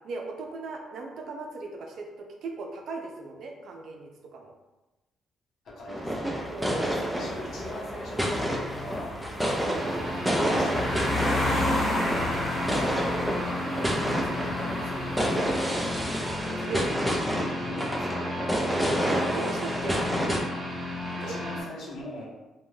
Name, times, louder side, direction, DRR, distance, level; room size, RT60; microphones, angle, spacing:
voice 1, 0.0-4.5 6.5-7.0 16.6-16.9 19.1-20.0 21.1-21.3, right 3 dB, 70° right, 2 dB, 0.4 m, -38 dB
voice 2, 5.6-9.1 9.7-11.5 13.5-16.2 16.5-17.2 17.6-18.3 21.2-22.2, left 1 dB, 70° left, -5 dB, 0.9 m, -41 dB
sound 1, 5.9-20.4, equal, 5° right, 0.5 m, -29 dB
sound 2, 6.1-16.4, left 1 dB, 25° left, 0.9 m, -33 dB
sound 3, 9.7-21.6, left 1 dB, 40° right, 0.8 m, -34 dB
2.6 x 2.2 x 3.1 m, 1.1 s
cardioid pair, 90°, 0 cm